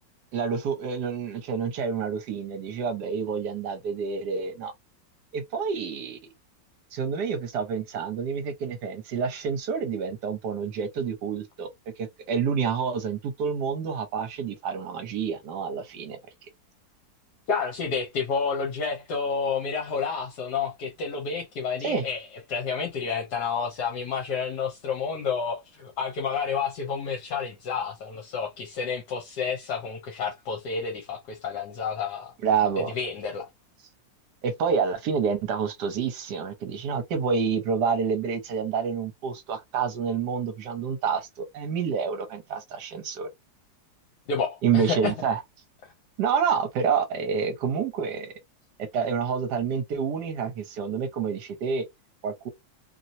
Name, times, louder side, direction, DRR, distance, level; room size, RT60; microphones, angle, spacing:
voice 1, 0.3-4.7 5.3-6.2 6.9-11.7 12.0-16.2 21.8-22.0 32.4-32.9 34.4-43.3 44.6-45.4 46.2-48.3 48.9-51.9 52.2-52.5, right 6 dB, 70° right, 1.2 m, -28 dB
voice 2, 17.5-32.3 32.8-33.5 44.3-45.1, left 5 dB, 70° left, 1.3 m, -30 dB
3.0 x 2.7 x 2.6 m
omnidirectional pair, 2.0 m